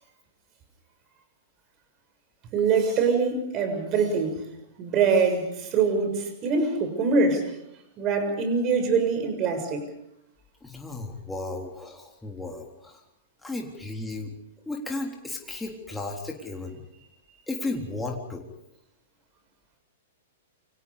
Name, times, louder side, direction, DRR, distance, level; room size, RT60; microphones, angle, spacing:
voice 1, 2.5-4.5 4.8-7.5 8.0-9.8 17.3-17.4, right 4 dB, 30° right, 7 dB, 6.7 m, -24 dB
voice 2, 10.6-13.0 13.4-14.3 14.7-16.8 17.5-18.4, left 2 dB, 5° left, 0 dB, 3.7 m, -34 dB
29.0 x 26.0 x 5.1 m, 0.81 s
figure-of-eight pair, 105°, 0 cm